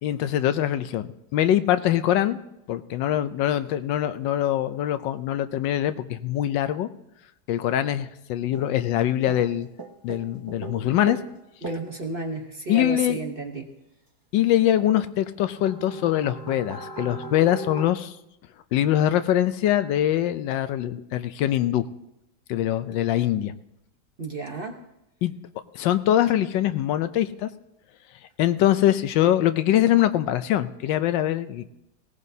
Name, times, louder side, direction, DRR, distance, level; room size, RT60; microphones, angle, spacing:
voice 1, 0.0-2.4 2.7-6.9 7.5-9.7 10.0-11.2 12.7-13.2 14.3-18.1 18.7-21.8 22.5-23.5 25.2-25.3 25.7-27.5 28.4-31.7, left 12 dB, 90° left, 11 dB, 1.4 m, -23 dB
sound 1, 8.5-9.0 9.3-11.3 11.6-12.0 15.0-15.1 15.3-17.9, right 5 dB, 20° right, 0.5 m, -38 dB
voice 2, 11.6-13.7 24.2-24.8 29.2-29.3, right 2 dB, 40° right, 3 dB, 1.0 m, -32 dB
19.0 x 17.5 x 2.7 m, 0.87 s
omnidirectional pair, 1.9 m